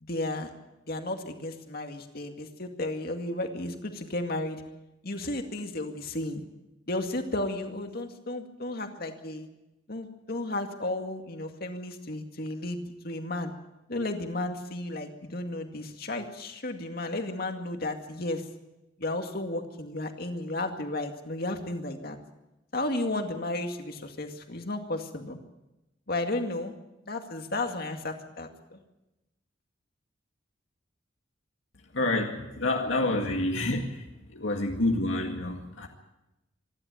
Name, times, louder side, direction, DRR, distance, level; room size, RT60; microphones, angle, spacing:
voice 1, 0.0-0.5 0.9-4.6 5.0-6.5 6.9-9.5 9.9-13.5 13.9-18.4 19.0-22.2 22.7-25.4 26.1-26.8 27.1-28.8, left 2 dB, 50° left, 5 dB, 2.2 m, -33 dB
voice 2, 31.9-33.9 34.3-35.9, left 2 dB, 80° left, 1 dB, 2.1 m, -28 dB
26.0 x 11.5 x 9.1 m, 0.97 s
head